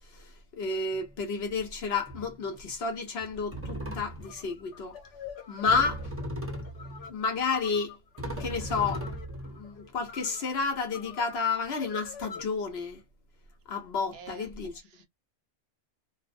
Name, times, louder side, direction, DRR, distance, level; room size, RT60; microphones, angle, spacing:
voice 1, 0.1-5.0 5.5-6.1 7.1-8.0 8.4-9.1 9.4-13.0 13.7-14.8, left 4 dB, 65° left, 1.0 m, -31 dB
sound 1, 0.9-1.1 2.1-2.5 3.2-3.3 3.5-4.4 5.7-7.1 7.7-7.8 8.2-10.0, equal, 20° right, 0.4 m, -37 dB
sound 2, 4.2-12.5, left 7 dB, 90° left, 1.1 m, -46 dB
voice 2, 14.1-15.1, right 6 dB, 65° right, 0.8 m, -49 dB
2.4 x 2.1 x 2.5 m
omnidirectional pair, 1.2 m